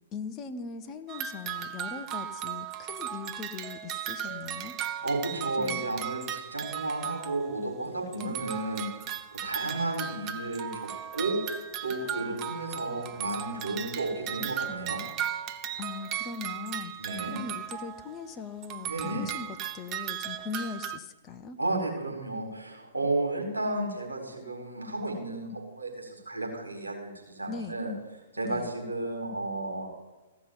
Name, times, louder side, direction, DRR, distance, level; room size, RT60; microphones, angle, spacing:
voice 1, 0.1-4.8 5.6-5.8 8.1-8.4 15.8-16.9 17.3-21.6 27.5-27.8 28.4-28.7, left 5 dB, 25° left, 7 dB, 0.9 m, -40 dB
sound 1, 1.1-7.9 8.1-18.3 18.6-21.0, right 10 dB, 25° right, 0.7 m, -37 dB
voice 2, 5.0-8.9 9.4-11.4 11.8-15.0 17.0-17.4 18.9-19.3 21.6-27.9 28.3-29.9, right 2 dB, 75° right, 0 dB, 4.2 m, -33 dB
15.0 x 6.0 x 9.6 m, 1.2 s
figure-of-eight pair, 115°, 0 cm